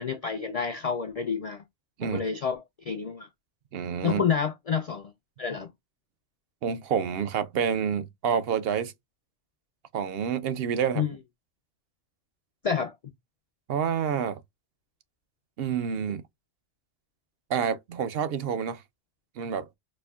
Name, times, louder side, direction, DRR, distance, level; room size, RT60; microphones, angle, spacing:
voice 1, 0.0-1.6 2.0-3.3 4.0-5.1 5.4-5.7 10.9-11.2 12.6-13.0, left 6 dB, 55° left, 0.4 m, -29 dB
voice 2, 3.7-4.2 6.6-8.9 9.9-11.0 13.7-14.4 15.6-16.2 17.5-18.8 19.4-19.7, right 7 dB, 65° right, 0.8 m, -28 dB
4.3 x 2.6 x 2.3 m
omnidirectional pair, 1.2 m